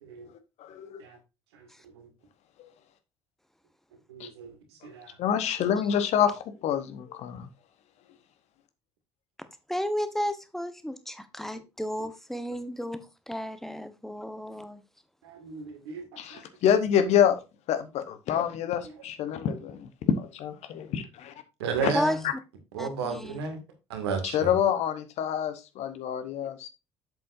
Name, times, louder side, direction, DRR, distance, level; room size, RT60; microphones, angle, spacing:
voice 1, 0.6-1.0 4.2-4.3 5.2-7.5 16.2-17.4 17.7-19.9 20.2-21.3 21.8-21.9 22.2-22.3 24.2-26.7, left 9 dB, 50° left, 11 dB, 1.1 m, -27 dB
voice 2, 4.1-4.5 4.8-5.1 15.2-16.4 18.8-18.9 21.6-22.2 22.7-23.6 23.9-24.5, right 5 dB, 70° right, 5 dB, 2.2 m, -33 dB
voice 3, 9.7-14.8 21.9-22.2 22.8-23.4, equal, ahead, 11 dB, 1.2 m, -33 dB
7.7 x 7.7 x 2.6 m, 0.26 s
figure-of-eight pair, 55°, 14 cm